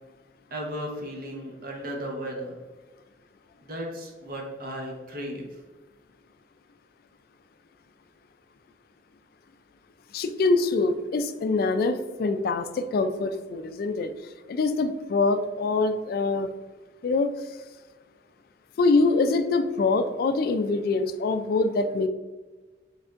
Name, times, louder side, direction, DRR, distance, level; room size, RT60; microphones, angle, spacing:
voice 1, 0.5-2.6 3.6-5.5, equal, 55° right, 0 dB, 1.0 m, -35 dB
voice 2, 10.1-14.1 14.5-16.5 17.0-17.3 18.8-22.1, left 3 dB, 55° left, 10 dB, 0.3 m, -24 dB
5.0 x 3.4 x 2.4 m, 1.2 s
head